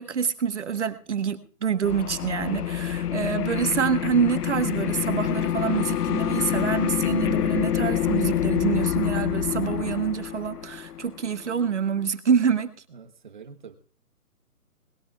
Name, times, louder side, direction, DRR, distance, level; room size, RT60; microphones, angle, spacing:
voice 1, 0.0-12.7, right 7 dB, 50° right, 9 dB, 1.4 m, -26 dB
sound 1, 1.8-11.8, left 10 dB, 85° left, 0.7 m, -27 dB
voice 2, 12.9-13.8, right 6 dB, 30° right, 8 dB, 1.2 m, -45 dB
20.5 x 16.5 x 2.4 m, 0.41 s
hypercardioid pair, 165°, 45 cm